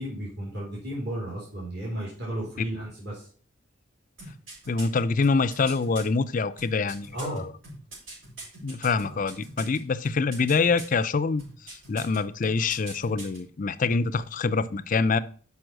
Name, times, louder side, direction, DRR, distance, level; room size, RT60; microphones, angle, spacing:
voice 1, 0.0-3.3 7.1-7.5 9.1-9.2, right 1 dB, 55° right, 2.9 m, -34 dB
sound 1, 4.2-6.0 6.6-9.8 10.0-11.0 11.4-12.2 12.4-13.4 13.7-13.8, right 2 dB, 85° right, 4.9 m, -42 dB
voice 2, 4.7-7.5 8.6-11.4 11.9-15.2, left 4 dB, 40° left, 0.4 m, -25 dB
6.2 x 5.4 x 6.4 m
head